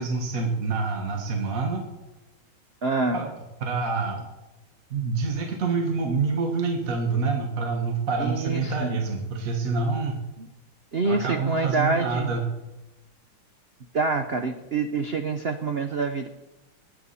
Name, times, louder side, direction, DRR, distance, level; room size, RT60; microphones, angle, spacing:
voice 1, 0.0-1.9 3.1-3.3 3.6-4.2 4.9-10.2 11.0-12.4, right 4 dB, 45° right, 2 dB, 1.8 m, -27 dB
voice 2, 2.8-3.3 8.2-9.0 10.4-10.5 10.9-12.3 13.9-16.3, right 3 dB, 85° right, 7 dB, 0.5 m, -26 dB
19.5 x 8.5 x 4.2 m, 1.0 s
omnidirectional pair, 2.2 m